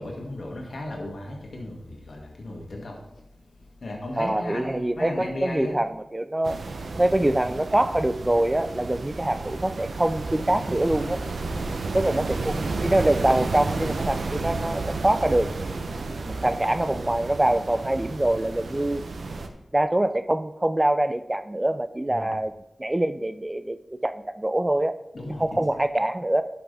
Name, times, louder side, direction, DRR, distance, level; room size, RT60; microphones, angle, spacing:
voice 1, 0.0-3.0 3.8-5.7 7.2-7.3 11.5-11.8 22.1-22.3 25.1-25.8, left 1 dB, 75° left, -1 dB, 2.0 m, -35 dB
voice 2, 4.2-6.6 6.9-11.2 11.9-15.5 16.3-19.0 19.7-22.5 22.8-23.8 24.0-25.0 25.4-26.4, right 1 dB, 20° right, 11 dB, 0.4 m, -24 dB
sound 1, 6.4-19.5, right 3 dB, 85° right, 0.7 m, -32 dB
11.0 x 6.1 x 3.4 m, 0.90 s
wide cardioid pair, 60°, 0 cm